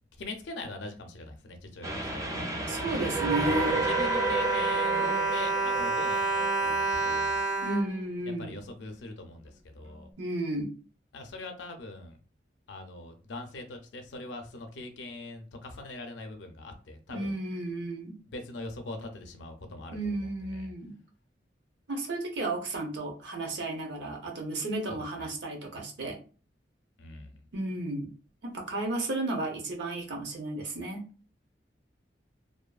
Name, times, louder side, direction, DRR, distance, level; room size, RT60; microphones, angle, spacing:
voice 1, 0.2-2.3 3.2-7.4 8.4-10.1 11.1-12.2 12.7-17.4 18.2-20.7 24.9-25.3 27.0-27.4, left 2 dB, 80° left, 5 dB, 0.4 m, -42 dB
Train, 1.8-7.1, right 2 dB, 20° right, 0.3 m, -32 dB
Bowed string instrument, 2.5-8.8 9.5-9.6 9.8-10.0, right 3 dB, 85° right, 1.0 m, -29 dB
voice 2, 2.7-3.7 7.6-8.5 10.2-10.7 17.1-18.2 19.9-20.9 21.9-26.2 27.5-28.1 28.4-31.0, right 2 dB, 70° right, 2 dB, 0.7 m, -33 dB
2.5 x 2.3 x 2.3 m, 0.37 s
head